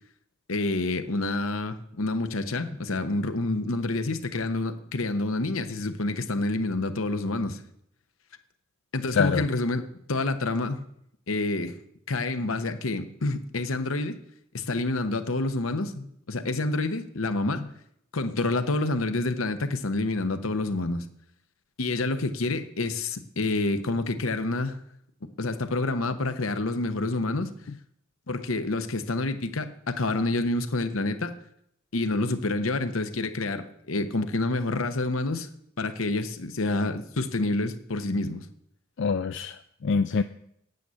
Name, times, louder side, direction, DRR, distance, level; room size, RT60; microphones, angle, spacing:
voice 1, 0.5-7.6 8.9-10.8 11.3-11.7 12.1-14.2 14.5-17.6 18.1-21.1 21.8-24.8 25.2-27.5 28.3-31.3 31.9-35.5 35.8-38.5, left 2 dB, 85° left, 9 dB, 1.0 m, -28 dB
voice 2, 39.0-40.2, left 5 dB, 60° left, 9 dB, 0.4 m, -25 dB
9.1 x 8.4 x 7.6 m, 0.73 s
head